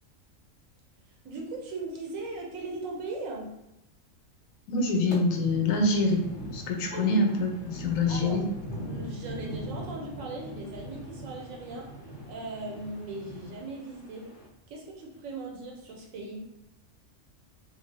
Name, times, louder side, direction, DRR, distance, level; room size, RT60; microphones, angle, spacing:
voice 1, 1.2-3.5 6.9-7.4 8.1-8.4 8.8-11.9 12.3-14.3 14.7-16.4, right 2 dB, 80° right, -1 dB, 1.1 m, -38 dB
voice 2, 4.7-6.2 6.5-8.4, left 2 dB, 90° left, 2 dB, 1.0 m, -25 dB
sound 1, 5.1-14.5, right 1 dB, 35° left, 0.5 m, -41 dB
3.1 x 2.4 x 2.6 m, 0.84 s
omnidirectional pair, 1.4 m